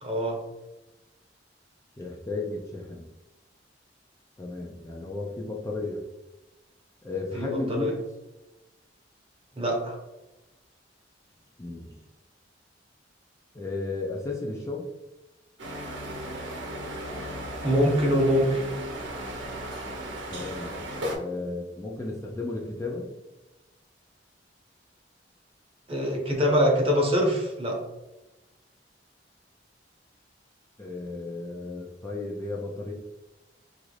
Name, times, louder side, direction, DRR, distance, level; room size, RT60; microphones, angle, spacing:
voice 1, 0.0-0.4 7.3-7.9 9.6-10.0 17.6-18.6 25.9-27.8, equal, 30° right, -1 dB, 0.8 m, -24 dB
voice 2, 2.0-3.1 4.4-6.1 7.0-7.9 11.6-12.0 13.5-14.9 20.3-20.8 21.1-23.1 30.8-32.9, left 2 dB, 15° left, -2 dB, 0.4 m, -34 dB
sound 1, 15.6-21.1, equal, 90° right, 0.7 m, -36 dB
3.0 x 2.5 x 3.1 m, 1.0 s
head